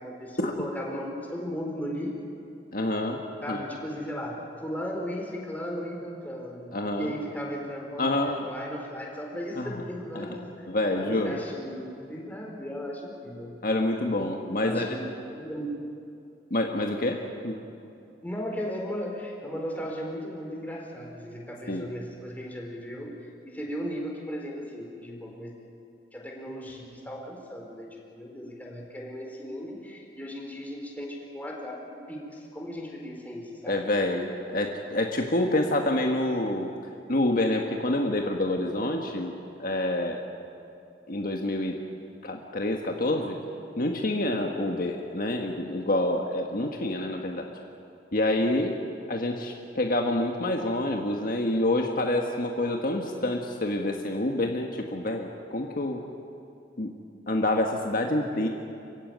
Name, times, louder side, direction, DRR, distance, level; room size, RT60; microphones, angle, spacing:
voice 1, 0.0-2.1 3.4-4.4 4.6-10.7 10.9-13.6 14.6-15.0 15.3-15.7 18.0-25.5 26.1-33.8 58.2-58.5, equal, 10° left, -1 dB, 4.4 m, -36 dB
voice 2, 2.7-3.6 6.7-7.1 8.0-8.5 9.5-9.7 10.1-10.3 10.7-11.4 13.6-14.9 16.5-17.6 21.7-21.9 33.7-36.7 37.1-39.3 39.6-40.2 41.1-41.8 42.2-43.4 43.8-47.5 48.1-48.8 49.1-56.0 56.8-56.9 57.3-58.5, left 1 dB, 50° left, 2 dB, 1.6 m, -27 dB
27.0 x 16.0 x 9.4 m, 2.6 s
head